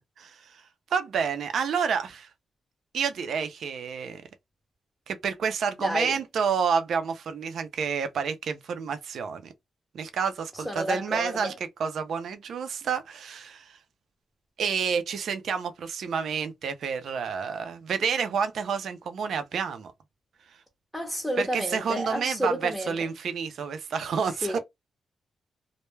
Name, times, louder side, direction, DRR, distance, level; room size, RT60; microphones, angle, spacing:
voice 1, 0.2-0.6 0.9-2.3 2.9-4.2 5.1-9.5 9.9-11.5 11.8-13.8 14.6-19.9 21.4-24.6, right 6 dB, 70° right, 0.4 m, -29 dB
voice 2, 5.8-6.2 10.5-11.6 20.9-23.0 24.4-24.6, equal, ahead, 0.6 m, -30 dB
2.2 x 2.1 x 3.0 m
cardioid pair, 125°, 0 cm